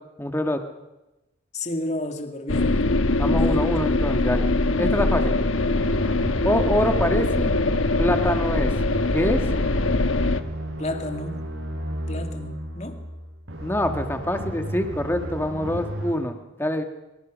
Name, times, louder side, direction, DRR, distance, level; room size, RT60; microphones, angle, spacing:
voice 1, 0.2-0.6 3.2-4.5 4.8-5.4 6.4-7.5 8.0-8.8 9.1-9.4 13.6-16.8, left 1 dB, 10° left, 6 dB, 1.5 m, -25 dB
voice 2, 1.5-2.8 3.3-3.7 10.8-11.4 11.9-13.0, left 1 dB, 35° left, 5 dB, 2.2 m, -32 dB
sound 1, 2.5-10.4, left 2 dB, 85° left, 1.2 m, -22 dB
sound 2, 5.5-16.1, equal, 75° right, 7.9 m, -33 dB
25.5 x 24.5 x 6.3 m, 1.0 s
head